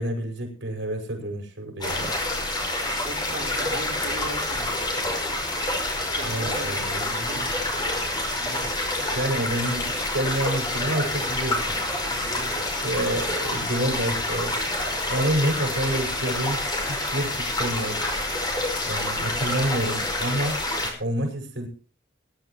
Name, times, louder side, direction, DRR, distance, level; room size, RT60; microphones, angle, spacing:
voice 1, 0.0-2.1 6.2-7.5 9.1-11.8 12.8-14.5 15.1-16.6 16.9-18.0 18.8-20.6 21.0-21.7, right 1 dB, 80° right, 3 dB, 5.8 m, -28 dB
sound 1, 1.8-20.9, left 1 dB, 25° left, 5.2 m, -27 dB
voice 2, 3.0-5.4 6.0-7.4 8.4-8.9 12.1-13.0, right 1 dB, 60° right, 1 dB, 4.2 m, -40 dB
21.0 x 11.5 x 3.1 m, 0.36 s
head